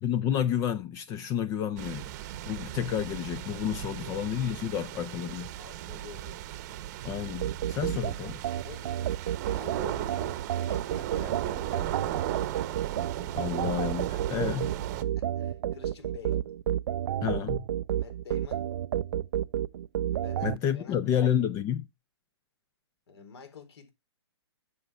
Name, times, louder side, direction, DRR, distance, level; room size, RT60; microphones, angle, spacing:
voice 1, 0.0-2.1 2.5-5.5 7.0-8.4 13.4-14.7 17.2-17.6 20.4-21.9, left 9 dB, 20° left, 0.5 m, -30 dB
sound 1, 1.8-15.0, right 13 dB, 35° right, 0.9 m, -36 dB
voice 2, 3.9-4.2 5.0-6.4 8.7-8.9 9.5-12.6 15.0-16.5 17.9-18.7 20.1-21.2 23.1-23.9, left 5 dB, 65° left, 3.9 m, -48 dB
sound 2, 7.4-20.6, right 11 dB, 55° right, 0.4 m, -31 dB
9.6 x 7.0 x 4.6 m
hypercardioid pair, 135°, 15 cm